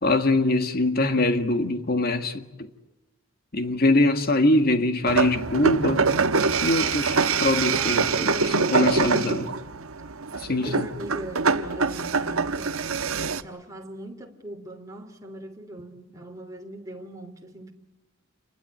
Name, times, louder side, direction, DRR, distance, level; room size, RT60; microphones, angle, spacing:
voice 1, 0.0-2.7 3.5-6.1 6.6-8.3 8.6-9.5 10.4-10.9, left 2 dB, 45° left, 1.9 m, -23 dB
sound 1, 5.1-13.4, right 4 dB, 90° right, 1.3 m, -24 dB
voice 2, 7.7-9.5 10.5-17.7, right 1 dB, 15° right, 3.0 m, -40 dB
28.5 x 21.5 x 9.3 m
head